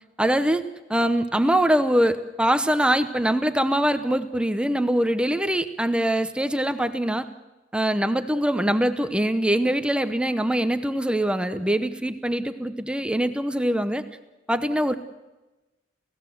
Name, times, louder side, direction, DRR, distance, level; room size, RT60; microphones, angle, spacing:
voice 1, 0.2-0.6 0.9-7.3 7.7-14.0 14.5-14.9, right 1 dB, 5° right, 10 dB, 0.8 m, -23 dB
29.5 x 16.5 x 7.9 m, 1.1 s
head